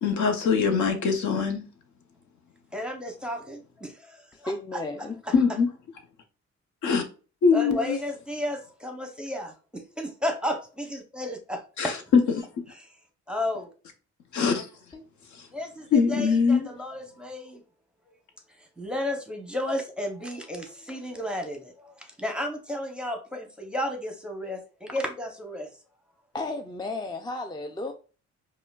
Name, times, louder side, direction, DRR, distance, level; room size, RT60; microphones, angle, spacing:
voice 1, 0.0-1.6 5.3-5.7 6.8-7.0 7.4-8.0 11.8-11.9 12.4-12.5 14.3-14.7 15.9-16.7, left 5 dB, 70° left, 0.8 m, -22 dB
voice 2, 2.7-4.8 5.3-5.4 7.5-11.9 12.8-12.9 13.3-13.7 15.5-17.6 18.8-25.7, left 1 dB, 5° right, 0.8 m, -33 dB
voice 3, 4.3-5.2 14.9-15.0 26.3-27.9, left 2 dB, 15° left, 0.3 m, -33 dB
5.0 x 2.2 x 2.3 m
cardioid pair, 90°, 30 cm